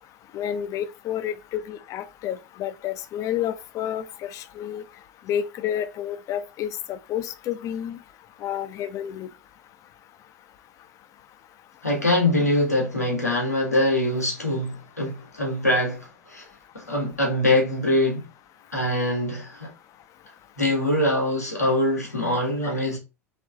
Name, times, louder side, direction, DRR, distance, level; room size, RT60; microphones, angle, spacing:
voice 1, 0.3-4.8 5.3-8.0 8.4-9.3, left 10 dB, 40° left, 0.6 m, -30 dB
voice 2, 11.8-16.4 16.7-18.2 18.7-19.7 20.6-23.0, left 1 dB, 90° left, 1.6 m, -23 dB
3.5 x 3.4 x 3.5 m
figure-of-eight pair, 75°, 8 cm